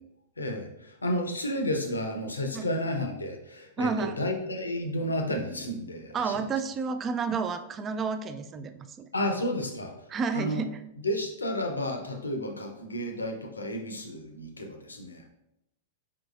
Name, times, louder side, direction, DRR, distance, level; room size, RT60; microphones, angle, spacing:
voice 1, 0.4-6.4 9.1-9.9 10.3-10.6 11.0-15.2, left 1 dB, 75° left, 4 dB, 0.6 m, -32 dB
voice 2, 3.8-4.2 6.1-9.1 10.1-10.8, right 5 dB, 25° right, 9 dB, 0.3 m, -30 dB
4.6 x 3.7 x 2.4 m, 0.84 s
figure-of-eight pair, 100°, 0 cm